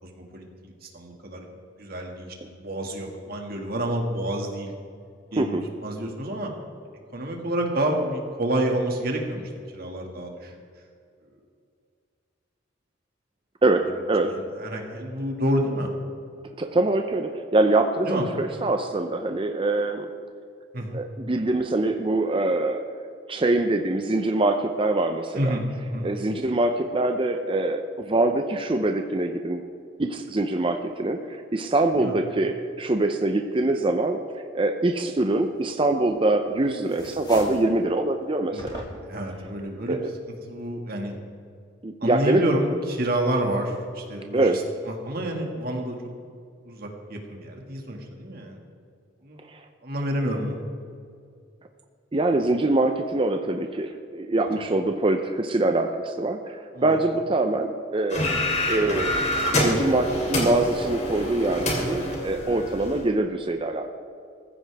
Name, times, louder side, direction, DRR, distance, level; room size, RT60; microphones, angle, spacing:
voice 1, 0.0-1.5 1.8-4.7 5.3-6.5 7.1-10.5 14.3-15.9 18.0-18.2 20.7-21.0 25.4-25.6 25.9-26.1 32.0-32.1 38.5-38.6 39.0-40.0 40.5-41.2 42.0-46.0 46.7-48.6 49.2-49.4 49.8-50.5 54.6-54.7 56.7-57.0, right 1 dB, 50° right, 1 dB, 2.0 m, -29 dB
voice 2, 13.6-14.3 16.6-20.1 20.9-22.8 23.3-25.6 26.0-29.6 30.0-38.8 39.9-40.1 41.8-42.4 44.3-44.6 49.5-49.6 52.1-59.2 59.5-63.9, right 2 dB, 25° right, 6 dB, 0.6 m, -24 dB
sound 1, 36.0-36.5 36.8-37.7 38.6-39.2, left 1 dB, 20° left, 2.4 m, -41 dB
sound 2, 58.1-63.0, left 1 dB, 35° left, 3.0 m, -26 dB
19.0 x 15.0 x 3.5 m, 2.3 s
head